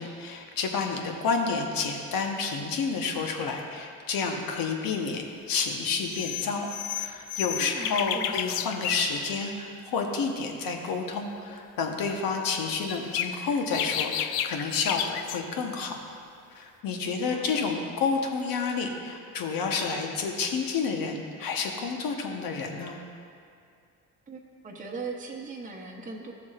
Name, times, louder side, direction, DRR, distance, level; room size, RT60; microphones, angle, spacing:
voice 1, 0.0-16.0 16.5-23.0, left 4 dB, 70° left, 2 dB, 1.1 m, -30 dB
sound 1, 5.6-5.8 6.0-9.1 12.7-15.4, left 10 dB, 85° left, 0.5 m, -32 dB
voice 2, 7.6-8.4 17.0-17.6 24.3-26.3, right 3 dB, 20° right, -1 dB, 0.9 m, -39 dB
13.0 x 7.1 x 2.5 m, 2.4 s
supercardioid pair, 75°, 36 cm